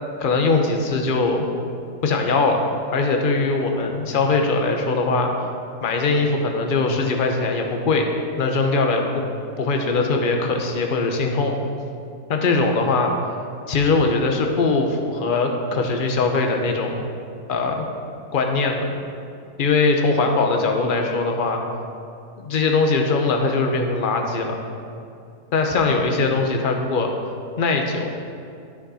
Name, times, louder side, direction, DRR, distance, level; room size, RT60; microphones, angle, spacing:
voice 1, 0.2-1.5 2.0-2.6 2.9-5.3 5.8-8.1 8.4-9.1 9.6-11.6 12.3-13.1 13.7-17.1 17.5-17.8 18.3-18.9 19.6-21.6 22.4-24.6 25.5-27.1 27.6-28.2, left 3 dB, 40° left, 3 dB, 0.9 m, -21 dB
12.0 x 6.5 x 4.2 m, 2.5 s
omnidirectional pair, 1.6 m